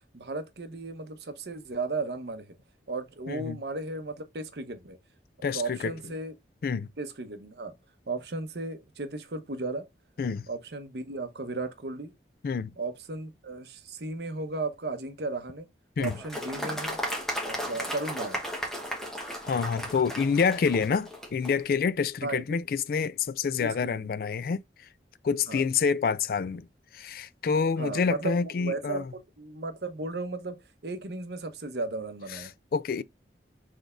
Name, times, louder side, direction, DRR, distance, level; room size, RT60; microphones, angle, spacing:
voice 1, 0.1-2.6 2.9-5.0 5.4-6.3 7.0-7.7 8.1-9.9 10.5-12.1 12.8-15.7 16.0-17.0 17.4-18.4 22.2-22.4 23.0-23.1 23.6-24.2 25.5-25.6 27.8-29.1 29.4-32.5, right 3 dB, 70° right, 0.9 m, -35 dB
voice 2, 3.3-3.6 5.4-5.9 6.6-6.9 10.2-10.5 12.4-12.7 16.0-16.2 19.4-24.6 25.2-26.7 26.9-29.0 32.3-32.4 32.7-33.0, left 5 dB, 55° left, 0.3 m, -27 dB
Applause, 16.0-21.5, equal, 5° left, 1.1 m, -35 dB
6.2 x 3.4 x 2.4 m
head